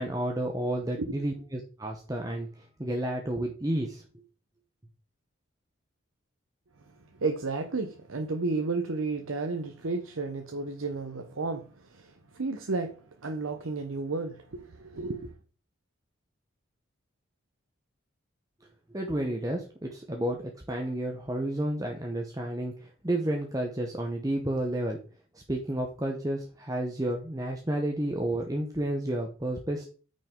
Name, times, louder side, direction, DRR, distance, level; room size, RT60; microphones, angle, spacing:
voice 1, 0.0-4.0 18.9-25.0 25.3-29.9, right 1 dB, 15° right, 0.8 m, -31 dB
voice 2, 7.2-11.6 11.9-15.3, right 3 dB, 85° right, 0.9 m, -32 dB
8.8 x 5.4 x 3.7 m
head